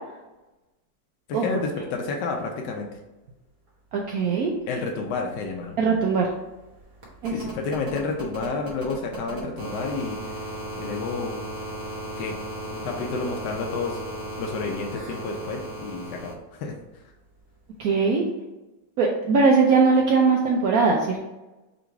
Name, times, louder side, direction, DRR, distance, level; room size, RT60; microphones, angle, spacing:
voice 1, 1.3-2.9 4.7-5.8 7.3-10.2 10.8-11.4 12.2-12.4 12.7-14.0 14.4-16.8, left 4 dB, 80° left, 1 dB, 1.2 m, -30 dB
voice 2, 3.9-4.5 5.8-6.3 7.2-7.3 17.8-18.2 19.0-21.2, right 4 dB, 70° right, -1 dB, 1.0 m, -20 dB
sound 1, 5.1-5.2 5.4-16.3 17.8-17.9, right 1 dB, 50° right, 1.3 m, -36 dB
3.9 x 3.0 x 4.5 m, 1.0 s
omnidirectional pair, 1.9 m